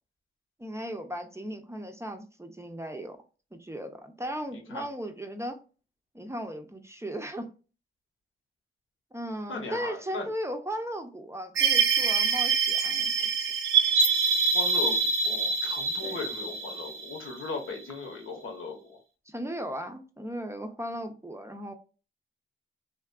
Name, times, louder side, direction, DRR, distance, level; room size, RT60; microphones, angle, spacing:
voice 1, 0.6-3.2 3.5-5.6 6.1-7.5 9.1-13.4 16.0-16.2 19.3-21.7, equal, 15° right, 0.4 m, -37 dB
voice 2, 9.5-10.3 14.5-19.0, left 3 dB, 80° left, 0.8 m, -37 dB
sound 1, 11.6-17.8, right 5 dB, 85° right, 0.5 m, -25 dB
2.7 x 2.4 x 2.3 m
cardioid pair, 60°, 21 cm